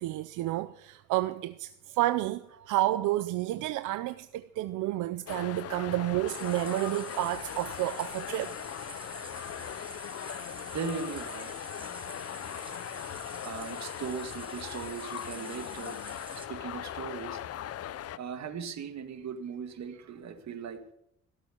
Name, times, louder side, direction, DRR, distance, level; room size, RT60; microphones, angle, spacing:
voice 1, 0.0-8.5, right 16 dB, 90° right, 0.6 m, -30 dB
sound 1, 5.3-18.2, left 11 dB, 55° left, 0.6 m, -40 dB
sound 2, 6.3-16.5, right 3 dB, 15° right, 1.9 m, -46 dB
voice 2, 10.7-11.6 12.7-12.8 13.4-16.0 16.5-17.4 18.2-20.9, right 6 dB, 65° right, 2.1 m, -38 dB
17.0 x 7.6 x 9.2 m
cardioid pair, 90°, 30 cm